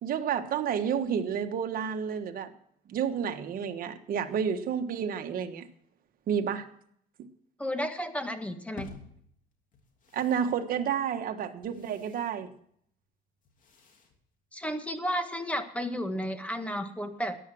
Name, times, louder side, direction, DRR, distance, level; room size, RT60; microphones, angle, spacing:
voice 1, 0.0-2.5 2.9-5.7 6.3-6.6 7.2-7.3 10.1-12.5, right 8 dB, 60° right, 1.4 m, -30 dB
voice 2, 7.6-8.9 14.5-17.4, equal, 10° left, 1.6 m, -32 dB
sound 1, 8.8-15.0, left 4 dB, 50° left, 3.0 m, -53 dB
14.0 x 10.5 x 6.2 m
cardioid pair, 110°, 17 cm